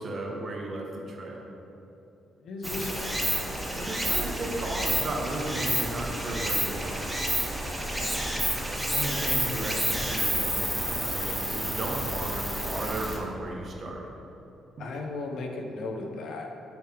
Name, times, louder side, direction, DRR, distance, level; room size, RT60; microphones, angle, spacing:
voice 1, 0.0-1.4 2.7-2.9 3.7-7.1 7.8-8.1 8.9-14.1, right 2 dB, 45° right, 0 dB, 1.3 m, -35 dB
voice 2, 2.4-3.1 14.8-16.5, left 3 dB, 70° left, 2 dB, 0.9 m, -35 dB
Stream, 2.6-13.2, right 1 dB, 10° right, 1.1 m, -29 dB
8.4 x 6.4 x 3.5 m, 2.9 s
cardioid pair, 90°, 0 cm